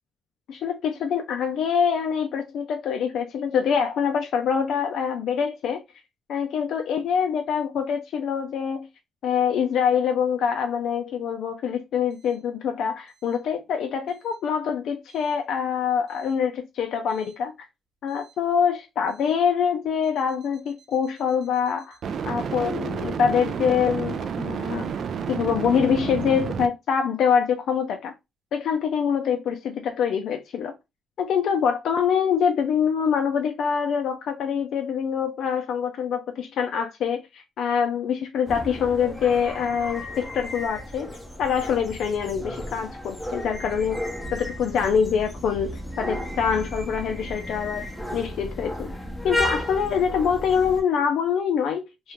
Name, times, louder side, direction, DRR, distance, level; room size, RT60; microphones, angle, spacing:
voice 1, 0.5-5.8 6.3-8.9 9.2-17.7 18.0-22.0 22.3-24.9 25.3-28.1 28.5-30.7 31.2-41.1 41.4-44.0 44.3-47.9 48.1-48.9 49.2-52.1, left 7 dB, 75° left, 0.3 m, -25 dB
sound 1, 17.1-17.3 22.0-26.7, right 6 dB, 60° right, 0.3 m, -30 dB
sound 2, 38.4-50.8, left 1 dB, 5° left, 0.7 m, -33 dB
2.3 x 2.1 x 2.9 m
cardioid pair, 90°, 0 cm